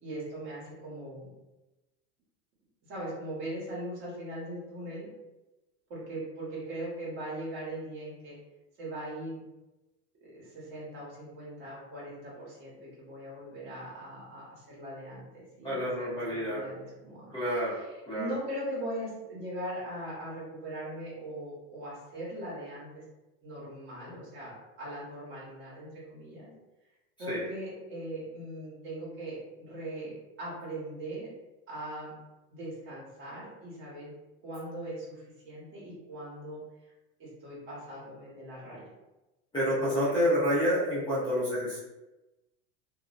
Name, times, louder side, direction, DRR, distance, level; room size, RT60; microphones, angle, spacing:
voice 1, 0.0-1.3 2.9-5.1 5.9-8.4 8.8-9.4 10.2-17.3 17.7-23.0 23.4-26.5 27.2-31.3 31.7-32.2 32.5-34.1 34.4-36.9 37.2-38.8 39.7-40.3, right 1 dB, 35° right, -7 dB, 1.1 m, -40 dB
voice 2, 15.6-16.6 17.3-17.8 18.1-18.3 27.3-27.4 39.5-41.8, equal, 15° left, -10 dB, 0.7 m, -28 dB
2.5 x 2.0 x 2.4 m, 1.0 s
supercardioid pair, 145°, 34 cm